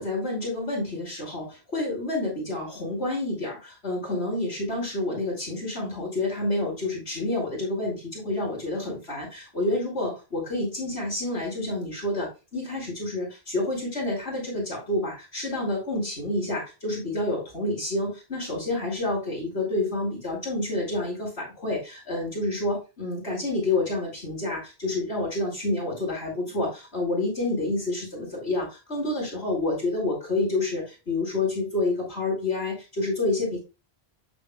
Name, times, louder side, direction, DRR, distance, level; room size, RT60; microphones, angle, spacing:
voice 1, 0.0-33.6, left 2 dB, 90° left, -3 dB, 5.7 m, -28 dB
12.5 x 5.5 x 2.3 m, 0.29 s
omnidirectional pair, 1.0 m